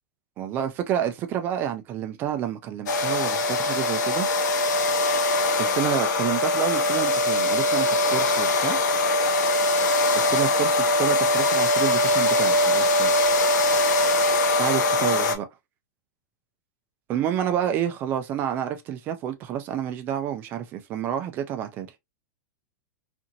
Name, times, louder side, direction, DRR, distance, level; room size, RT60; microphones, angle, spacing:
voice 1, 0.4-4.3 5.6-8.8 10.1-13.1 14.6-15.5 17.1-21.9, right 10 dB, 20° right, 0.3 m, -29 dB
sound 1, 2.9-15.4, left 2 dB, 65° left, 0.7 m, -22 dB
2.8 x 2.5 x 2.5 m
supercardioid pair, 170°, 10 cm